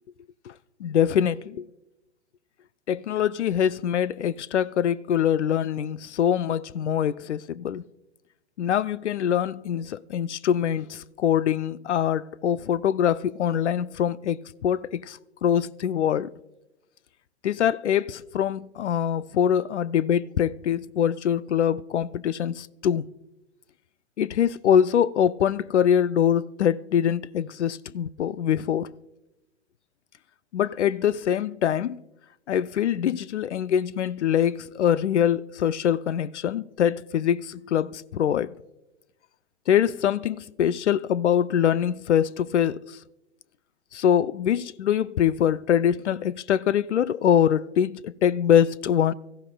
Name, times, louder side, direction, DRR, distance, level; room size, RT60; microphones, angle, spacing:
voice 1, 0.8-1.7 2.9-7.8 8.6-16.3 17.4-23.0 24.2-28.9 30.5-32.0 32.5-38.5 39.7-42.8 43.9-49.1, left 9 dB, 80° left, 0.5 m, -24 dB
24.0 x 14.5 x 2.3 m
hypercardioid pair, 115°, 35 cm